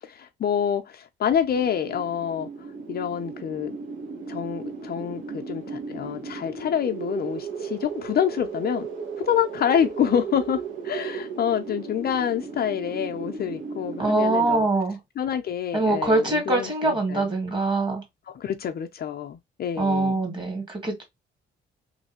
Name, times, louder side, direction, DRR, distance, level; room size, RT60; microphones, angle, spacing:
voice 1, 0.0-2.5 2.9-3.8 4.3-8.9 9.3-14.7 15.2-17.3 18.3-20.2, left 9 dB, 50° left, 0.5 m, -27 dB
sound 1, 1.5-14.5, right 5 dB, 75° right, 1.2 m, -36 dB
voice 2, 14.0-15.0 15.7-18.0 19.8-21.0, right 2 dB, 25° right, 2.1 m, -23 dB
3.1 x 2.6 x 2.8 m
cardioid pair, 90°, 20 cm